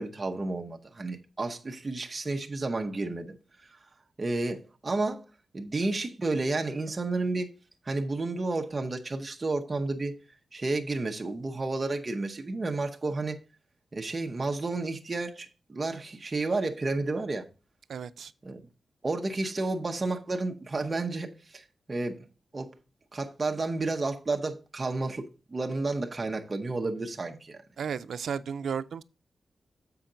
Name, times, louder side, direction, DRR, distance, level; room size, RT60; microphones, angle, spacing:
voice 1, 0.0-3.4 4.2-5.2 5.5-7.5 7.8-10.1 10.5-13.4 13.9-17.5 18.4-18.6 19.0-22.2 22.5-22.7 23.1-27.6, right 3 dB, 25° right, 0.7 m, -31 dB
voice 2, 17.9-18.3 27.8-29.0, right 7 dB, 85° right, 0.4 m, -33 dB
7.4 x 5.7 x 3.8 m
wide cardioid pair, 165°, 0 cm